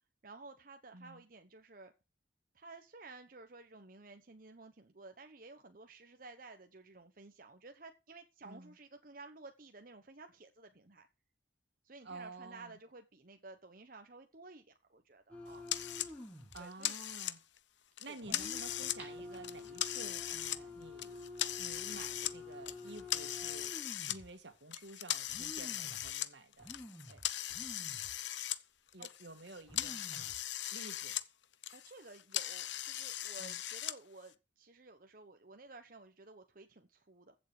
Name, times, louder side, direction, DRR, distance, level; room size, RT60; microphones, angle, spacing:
voice 1, 0.2-1.9 2.5-11.1 11.8-15.6 16.4-17.0 18.1-18.5 29.0-29.1 31.7-37.3, right 3 dB, 50° right, 1.1 m, -54 dB
voice 2, 0.9-1.2 8.4-8.7 12.0-12.8 16.5-17.4 18.0-21.2 21.6-26.7 27.1-27.2 28.9-30.4 30.7-31.2 33.4-33.6, right 2 dB, 75° right, 2.1 m, -51 dB
Pool Table Break, 15.2-15.3 18.8-20.1 20.6-20.7, right 1 dB, 10° right, 5.2 m, -57 dB
sound 1, 15.3-16.6 17.0-17.1 18.2-24.3 24.9-25.0 25.3-26.1 26.6-28.2 28.5-28.6 29.3-29.4 29.6-30.4 30.9-31.1, left 2 dB, 5° left, 5.1 m, -49 dB
sound 2, 15.7-16.1 16.5-17.6 18.0-19.0 19.3-20.6 21.0-22.3 22.7-24.2 24.7-28.6 28.9-31.2 31.5-33.9, left 12 dB, 80° left, 0.9 m, -39 dB
15.5 x 7.5 x 5.0 m
head